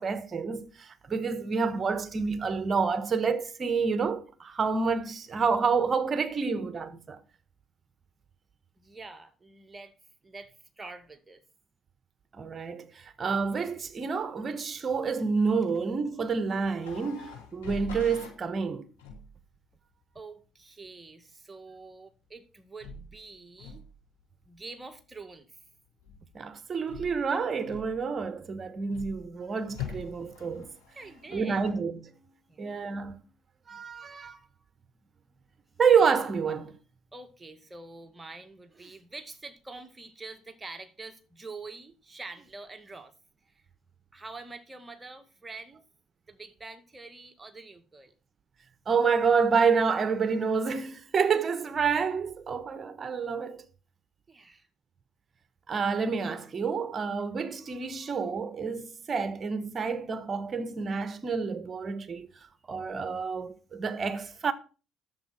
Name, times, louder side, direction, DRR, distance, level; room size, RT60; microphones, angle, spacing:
voice 1, 0.0-7.2 12.3-18.9 26.3-30.7 31.3-32.0 32.6-33.2 33.7-34.4 35.8-36.8 48.9-53.6 55.7-62.3 62.7-64.5, right 5 dB, 40° right, 1.3 m, -28 dB
voice 2, 8.8-9.9 10.2-11.4 20.1-23.8 24.4-25.6 31.0-31.6 32.5-32.7 37.1-43.1 43.4-43.6 44.1-45.8 46.3-48.1 54.3-54.7, right 3 dB, 20° right, 2.1 m, -46 dB
sound 1, 16.8-18.4 19.0-19.4 22.8-23.2 23.6-23.9 26.0-26.4 26.9-27.3 27.6-28.2 28.9-29.3 29.7-31.7, left 3 dB, 85° left, 4.5 m, -43 dB
10.5 x 7.6 x 6.0 m
hypercardioid pair, 55°, 0 cm